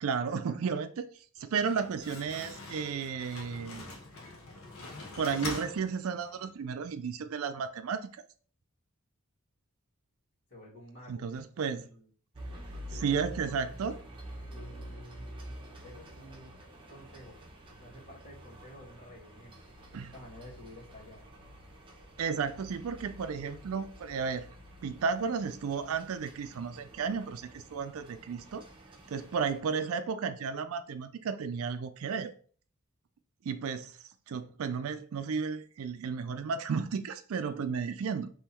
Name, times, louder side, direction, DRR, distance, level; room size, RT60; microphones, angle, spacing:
voice 1, 0.0-1.1 1.4-3.9 5.2-8.0 11.1-11.9 12.9-14.0 19.9-20.1 22.2-24.5 24.8-28.7 29.1-32.3 33.4-34.0 34.3-38.3, right 6 dB, 70° right, 0.4 m, -33 dB
Slam, 1.4-6.5, left 2 dB, 70° left, 1.0 m, -44 dB
voice 2, 10.5-11.2 11.6-12.1 12.7-13.2 14.5-15.5 15.8-16.5 16.9-17.4 17.6-21.2, equal, 45° left, 1.8 m, -51 dB
sound 1, 12.3-29.6, right 1 dB, 25° right, 1.0 m, -48 dB
3.7 x 3.0 x 4.3 m
head